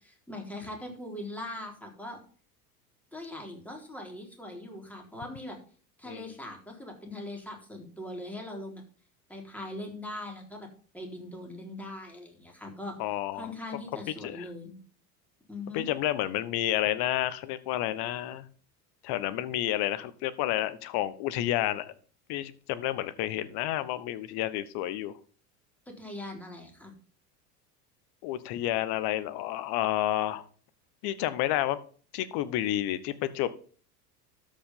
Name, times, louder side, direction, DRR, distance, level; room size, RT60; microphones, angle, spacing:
voice 1, 0.0-2.2 3.1-5.6 6.0-8.8 9.3-10.7 10.9-13.0 13.3-14.8 15.5-15.9 25.9-26.9, left 1 dB, 5° left, 0 dB, 3.7 m, -41 dB
voice 2, 13.0-13.5 14.2-14.5 15.7-18.4 19.0-21.9 22.3-25.1 28.2-30.4 31.0-31.8 32.1-33.5, left 13 dB, 55° left, 15 dB, 1.2 m, -30 dB
13.0 x 5.4 x 5.5 m, 0.42 s
hypercardioid pair, 75°, 47 cm